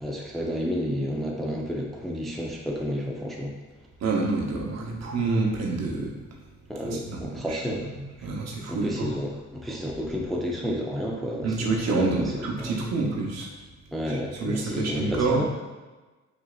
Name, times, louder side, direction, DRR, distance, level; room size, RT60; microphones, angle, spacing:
voice 1, 0.0-3.5 6.7-7.9 8.2-8.3 8.7-12.7 13.9-15.4, equal, ahead, -2 dB, 0.5 m, -31 dB
voice 2, 4.0-6.1 6.8-7.6 7.9-9.2 11.4-13.5 14.1-15.4, right 3 dB, 60° right, -1 dB, 0.9 m, -28 dB
5.1 x 2.8 x 2.4 m, 1.2 s
cardioid pair, 90°, 30 cm